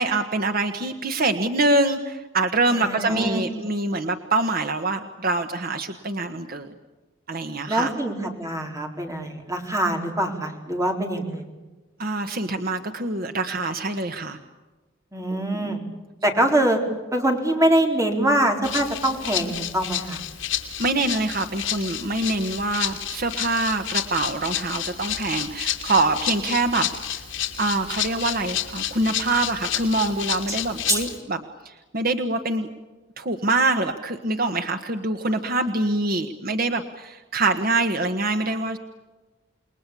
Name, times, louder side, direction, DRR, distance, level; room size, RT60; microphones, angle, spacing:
voice 1, 0.0-6.7 7.3-7.9 12.0-14.4 15.5-15.7 20.8-27.2 27.6-31.4 31.6-32.7 33.2-38.8, right 2 dB, 50° right, 7 dB, 1.4 m, -25 dB
voice 2, 2.7-3.4 7.7-11.4 15.1-15.8 16.2-16.8 17.1-20.2 30.5-30.6 30.9-31.0, right 1 dB, 15° right, 3 dB, 4.1 m, -24 dB
Rattle (instrument), 18.6-31.2, left 11 dB, 70° left, 3.1 m, -30 dB
29.0 x 21.0 x 8.5 m, 1.2 s
head